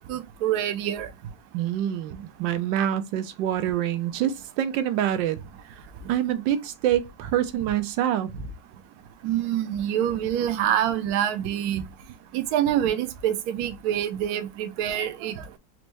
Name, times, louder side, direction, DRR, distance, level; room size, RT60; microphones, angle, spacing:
voice 1, 0.1-1.1 9.2-11.8 12.3-15.4, right 10 dB, 70° right, 1.0 m, -26 dB
voice 2, 1.5-5.4 6.1-8.5, right 11 dB, 85° right, 1.3 m, -26 dB
4.4 x 2.6 x 3.0 m
omnidirectional pair, 1.9 m